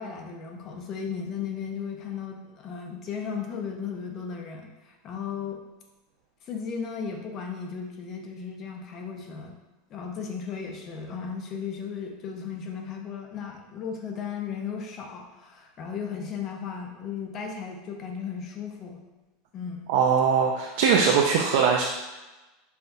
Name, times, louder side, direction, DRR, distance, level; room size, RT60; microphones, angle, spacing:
voice 1, 0.0-5.6 6.4-9.5 9.9-19.0 19.5-19.9, left 6 dB, 35° left, 2 dB, 0.6 m, -35 dB
voice 2, 19.9-21.8, right 6 dB, 70° right, 0 dB, 0.4 m, -21 dB
5.6 x 2.3 x 2.6 m, 1.1 s
supercardioid pair, 140°, 0 cm